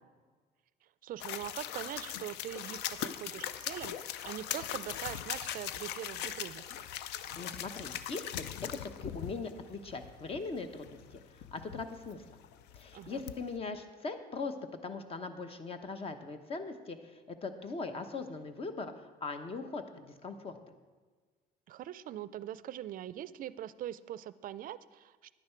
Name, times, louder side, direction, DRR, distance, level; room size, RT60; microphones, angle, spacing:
voice 1, 1.0-4.0 4.2-6.7 12.9-13.2 21.7-25.3, right 12 dB, 55° right, 17 dB, 0.4 m, -42 dB
sound 1, 1.2-13.6, left 10 dB, 85° left, 0.5 m, -41 dB
voice 2, 7.4-11.2 11.5-12.2 12.8-14.5 14.8-18.9 19.2-20.6, left 4 dB, 35° left, 9 dB, 0.9 m, -40 dB
10.5 x 9.4 x 4.5 m, 1.4 s
cardioid pair, 110°, 17 cm